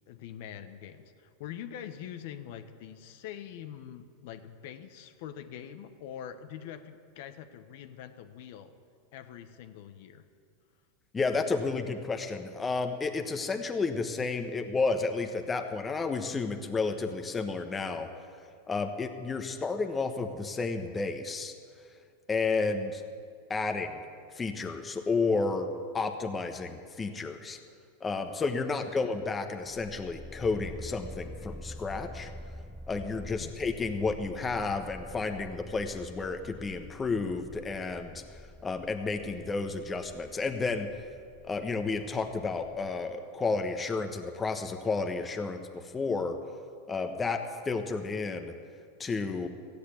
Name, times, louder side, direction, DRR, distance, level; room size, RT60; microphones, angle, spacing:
voice 1, 0.1-8.7 9.1-10.2 33.3-33.5, left 9 dB, 65° left, 8 dB, 1.0 m, -44 dB
voice 2, 11.1-18.1 18.7-21.5 22.3-23.0 23.5-24.0 24.3-25.7 25.9-27.6 28.0-32.3 32.9-38.2 38.6-40.9 41.4-46.4 46.9-48.5 49.0-49.5, left 4 dB, 15° left, 6 dB, 1.1 m, -31 dB
sound 1, 29.6-42.9, left 1 dB, ahead, 0.6 m, -47 dB
15.0 x 8.4 x 8.4 m, 2.3 s
supercardioid pair, 120°, 0 cm